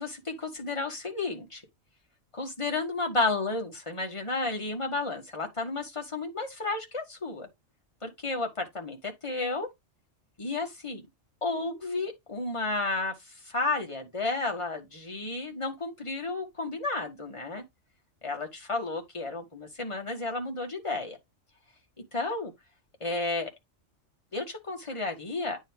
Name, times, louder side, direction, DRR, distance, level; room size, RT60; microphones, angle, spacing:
voice 1, 0.0-1.6 2.3-7.5 8.0-9.7 10.4-11.0 11.4-13.1 13.5-17.6 18.2-21.2 22.1-22.5 23.0-23.5 24.3-25.6, left 3 dB, 25° left, 1.7 m, -32 dB
9.0 x 3.6 x 4.6 m
omnidirectional pair, 1.4 m